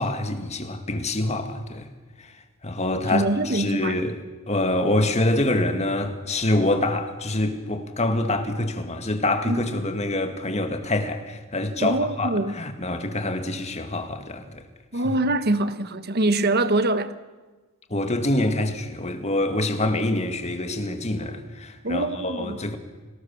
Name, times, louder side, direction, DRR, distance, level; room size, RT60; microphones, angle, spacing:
voice 1, 0.0-1.9 2.2-2.3 2.6-4.2 4.5-14.6 17.9-22.8, left 1 dB, 30° left, 2.1 m, -26 dB
voice 2, 3.1-4.0 9.4-9.8 11.8-12.5 14.9-17.1 21.8-22.6, right 2 dB, 50° right, 1.3 m, -24 dB
29.0 x 19.0 x 7.2 m
head